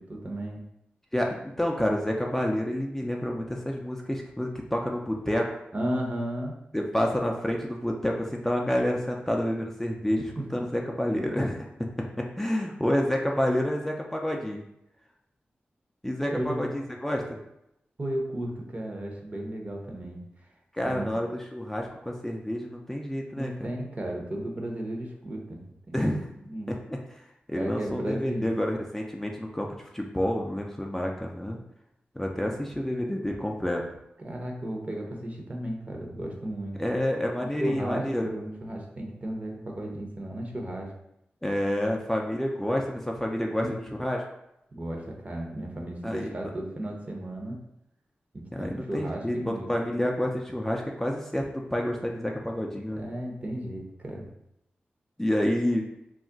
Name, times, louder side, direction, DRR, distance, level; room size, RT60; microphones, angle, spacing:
voice 1, 0.1-0.6 5.7-6.6 10.4-10.5 16.3-16.8 18.0-20.2 20.8-21.2 23.4-25.9 26.5-26.8 27.5-28.7 34.2-36.8 37.6-40.9 43.6-43.8 44.7-47.6 48.3-49.7 53.0-54.3, right 1 dB, 35° right, 0 dB, 0.7 m, -34 dB
voice 2, 1.1-5.6 6.7-11.7 12.4-14.6 16.0-17.4 20.7-23.7 25.9-26.3 26.7-27.0 27.5-31.6 32.2-33.8 36.8-38.3 41.4-44.2 46.0-46.3 48.5-53.0 55.2-55.8, left 1 dB, 10° left, 0 dB, 0.4 m, -29 dB
2.3 x 2.1 x 3.7 m, 0.81 s
cardioid pair, 50°, 4 cm